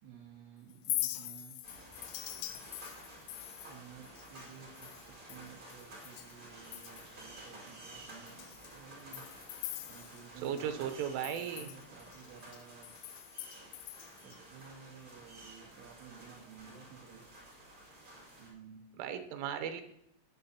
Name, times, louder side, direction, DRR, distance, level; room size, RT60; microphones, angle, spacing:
voice 1, 0.0-1.6 3.7-9.3 9.9-12.9 14.2-17.3 18.4-18.9, right 7 dB, 70° right, -1 dB, 3.3 m, -54 dB
Chink clink, 0.7-6.4 6.6-7.3 7.7-7.8 8.3-10.6 10.9-14.4, left 15 dB, 80° left, 2.7 m, -43 dB
sound 1, 1.6-18.5, right 1 dB, 20° right, 4.5 m, -52 dB
voice 2, 10.4-11.7 19.0-19.8, right 9 dB, 85° right, 7 dB, 3.4 m, -36 dB
18.0 x 11.0 x 2.8 m, 0.75 s
omnidirectional pair, 5.6 m